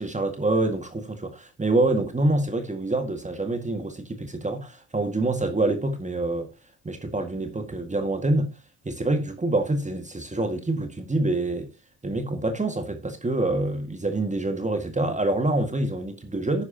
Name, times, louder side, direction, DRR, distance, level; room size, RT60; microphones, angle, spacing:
voice 1, 0.0-6.5 6.9-8.5 8.8-11.7 12.0-16.7, right 2 dB, 20° right, 1.9 m, -26 dB
12.5 x 9.6 x 2.8 m
supercardioid pair, 60°, 37 cm